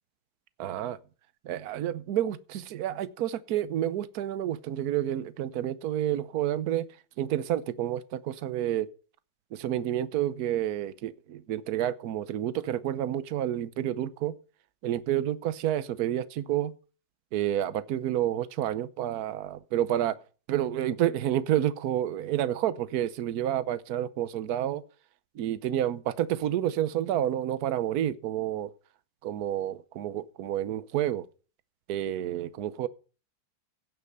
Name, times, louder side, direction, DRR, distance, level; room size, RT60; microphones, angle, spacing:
voice 1, 0.6-1.0 1.4-6.9 7.2-8.9 9.5-14.3 14.8-16.7 17.3-20.2 20.5-24.8 25.3-28.7 29.2-31.2 31.9-32.9, right 11 dB, 60° right, 1.2 m, -29 dB
16.5 x 5.9 x 6.7 m
omnidirectional pair, 2.1 m